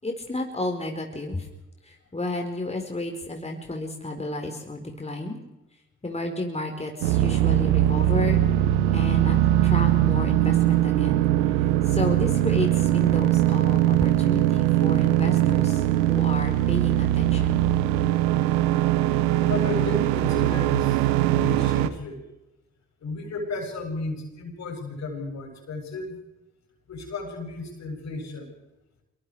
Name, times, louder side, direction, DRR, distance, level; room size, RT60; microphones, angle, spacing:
voice 1, 0.0-1.5 1.8-5.4 6.0-8.4 8.9-11.2 11.6-17.6, left 2 dB, 20° left, 3 dB, 4.5 m, -32 dB
sound 1, 7.0-21.9, right 13 dB, 90° right, 1.0 m, -21 dB
voice 2, 19.4-21.0 21.3-22.2 23.0-26.2 26.9-28.5, left 2 dB, 60° left, 3 dB, 7.7 m, -33 dB
26.0 x 23.0 x 4.9 m, 0.98 s
hypercardioid pair, 45°, 30 cm